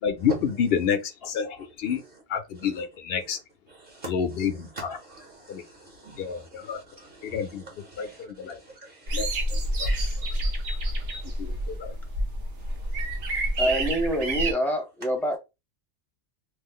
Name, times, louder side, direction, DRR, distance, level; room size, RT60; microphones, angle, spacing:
voice 1, 0.0-2.0 2.3-3.4 4.1-4.9 5.5-5.6 6.2-6.8 7.2-7.7 8.0-8.6 9.1-9.2 9.8-9.9 11.4-11.9, left 7 dB, 65° left, 0.7 m, -28 dB
voice 2, 1.8-2.2 2.5-2.9 3.2-3.4 3.7-11.8 12.6-13.6, right 3 dB, 55° right, 1.0 m, -45 dB
sound 1, 9.1-14.5, right 1 dB, 85° right, 1.1 m, -28 dB
voice 3, 13.6-15.4, equal, ahead, 0.6 m, -26 dB
3.0 x 2.0 x 3.5 m
omnidirectional pair, 1.2 m